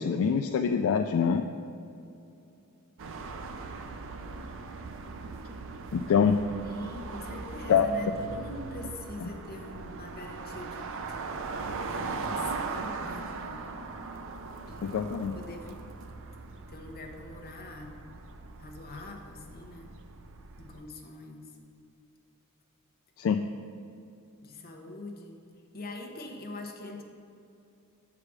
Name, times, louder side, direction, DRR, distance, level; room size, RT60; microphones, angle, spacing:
voice 1, 0.0-1.4 5.9-6.4 7.7-7.9 14.8-15.4 23.2-23.4, left 7 dB, 60° left, 6 dB, 0.3 m, -25 dB
sound 1, 3.0-20.8, right 4 dB, 60° right, 0.5 m, -39 dB
voice 2, 6.6-11.4 11.9-13.6 14.6-15.0 15.3-15.9 16.7-18.3 18.6-19.9 20.6-21.5 24.4-25.4 25.7-27.0, left 2 dB, 45° left, 2 dB, 1.0 m, -43 dB
7.3 x 4.9 x 6.2 m, 2.7 s
head